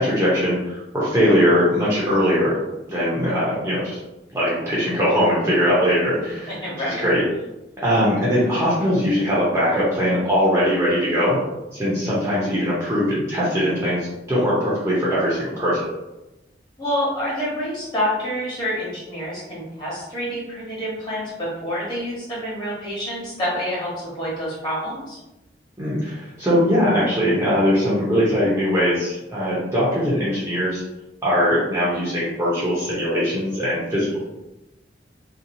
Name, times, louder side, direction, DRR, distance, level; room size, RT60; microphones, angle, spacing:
voice 1, 0.0-2.6 2.9-4.0 4.3-7.2 7.8-11.4 11.7-15.9 25.8-30.8 31.2-34.2, equal, 15° right, -8 dB, 0.6 m, -21 dB
voice 2, 6.5-7.1 16.8-25.2, equal, 25° left, -8 dB, 1.2 m, -27 dB
2.8 x 2.2 x 2.6 m, 1.0 s
head